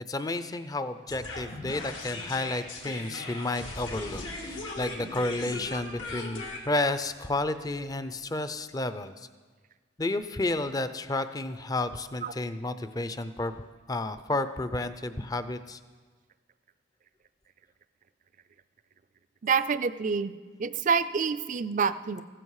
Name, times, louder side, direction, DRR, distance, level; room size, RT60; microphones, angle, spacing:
voice 1, 0.1-9.1 10.0-15.8, left 2 dB, 20° left, 11 dB, 0.5 m, -31 dB
sound 1, 1.1-8.2, left 2 dB, 90° left, 2.3 m, -39 dB
voice 2, 19.4-20.3 20.6-22.2, right 5 dB, 40° right, 14 dB, 0.4 m, -27 dB
15.5 x 13.5 x 4.8 m, 1.4 s
head